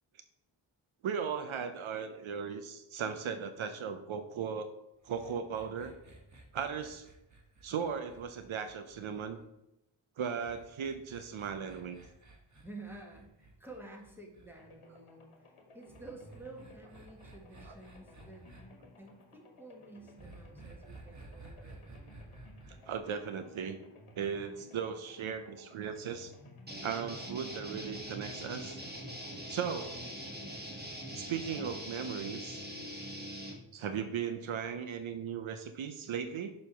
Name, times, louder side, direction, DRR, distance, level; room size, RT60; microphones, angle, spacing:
voice 1, 1.0-4.7 5.0-5.9 6.5-7.1 7.6-9.4 10.2-12.0 17.7-17.8 22.9-23.8 24.2-26.3 26.8-28.8 29.5-30.0 31.1-32.6 33.7-36.5, right 7 dB, 75° right, 9 dB, 0.7 m, -37 dB
sound 1, 5.0-9.5 10.4-14.5 15.9-18.6 20.2-23.0, right 2 dB, 35° right, 1.4 m, -54 dB
voice 2, 12.6-18.4 19.0-21.8, right 2 dB, 5° right, 0 dB, 1.7 m, -51 dB
sound 2, 14.6-31.5, left 2 dB, 90° left, 1.4 m, -57 dB
sound 3, 26.7-33.5, equal, 20° right, 1.4 m, -43 dB
6.8 x 3.3 x 5.8 m, 0.87 s
cardioid pair, 60°, 49 cm